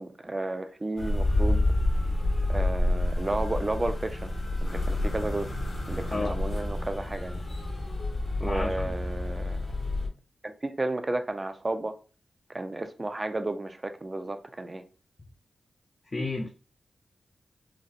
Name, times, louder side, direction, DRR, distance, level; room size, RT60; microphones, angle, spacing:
voice 1, 0.0-1.6 2.5-4.3 4.6-5.5 5.9-7.4 8.4-9.7 10.4-11.9 12.5-14.8, right 2 dB, 30° right, 0.4 m, -32 dB
sound 1, 1.0-10.1, left 1 dB, 65° left, 1.0 m, -28 dB
voice 2, 8.4-8.9 16.1-16.5, left 2 dB, 40° left, 0.5 m, -32 dB
3.9 x 2.1 x 2.5 m
cardioid pair, 65°, 0 cm